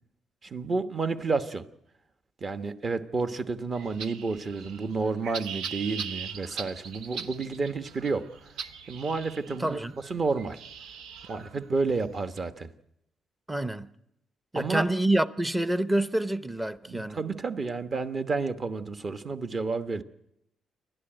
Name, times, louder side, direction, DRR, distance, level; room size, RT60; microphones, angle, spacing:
voice 1, 0.4-1.7 2.4-8.2 8.9-10.6 11.3-12.7 14.5-14.9 16.9-20.0, right 4 dB, 35° right, 1.2 m, -30 dB
sound 1, 3.7-12.4, right 6 dB, 85° right, 1.1 m, -41 dB
voice 2, 9.6-9.9 13.5-13.9 14.5-17.2, right 1 dB, 10° right, 0.7 m, -27 dB
28.0 x 12.0 x 9.0 m
cardioid pair, 140°, 0 cm